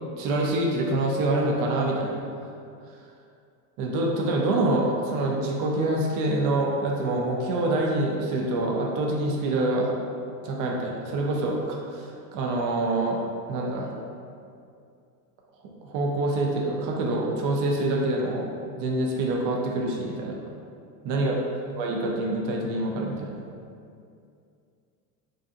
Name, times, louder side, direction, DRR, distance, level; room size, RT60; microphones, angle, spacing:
voice 1, 0.2-2.2 3.8-9.9 10.4-13.2 13.5-13.9 15.8-18.5 18.8-20.4 21.0-21.4 21.8-23.4, right 2 dB, 50° right, -1 dB, 0.5 m, -26 dB
2.5 x 2.5 x 2.4 m, 2.4 s
supercardioid pair, 95°, 46 cm